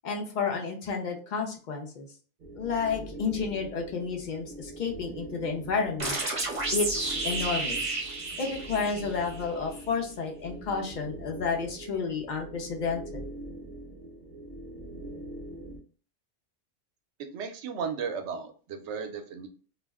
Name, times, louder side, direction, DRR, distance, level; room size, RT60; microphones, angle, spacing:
voice 1, 0.0-2.1 2.5-6.2 6.7-7.9 8.4-13.2, left 5 dB, 50° left, 2 dB, 0.6 m, -31 dB
sound 1, 2.4-15.8, right 1 dB, 60° right, 0.5 m, -43 dB
sound 2, 6.0-9.5, right 2 dB, 30° right, 0.9 m, -31 dB
voice 2, 17.3-19.5, right 6 dB, 75° right, 5 dB, 0.9 m, -35 dB
2.4 x 2.1 x 3.4 m, 0.39 s
omnidirectional pair, 1.2 m